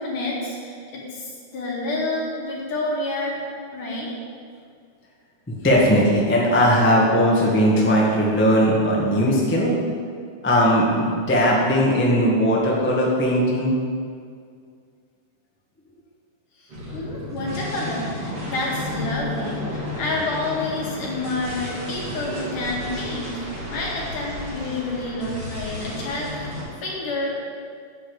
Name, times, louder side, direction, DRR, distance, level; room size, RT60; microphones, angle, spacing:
voice 1, 0.0-3.4 3.7-4.1 16.6-27.3, left 2 dB, 80° left, -5 dB, 3.7 m, -29 dB
voice 2, 5.5-9.8 10.4-13.7, equal, 10° left, -4 dB, 0.5 m, -19 dB
sound 1, 16.7-26.6, left 1 dB, 50° right, 3.7 m, -32 dB
9.8 x 5.2 x 8.1 m, 2.2 s
omnidirectional pair, 3.6 m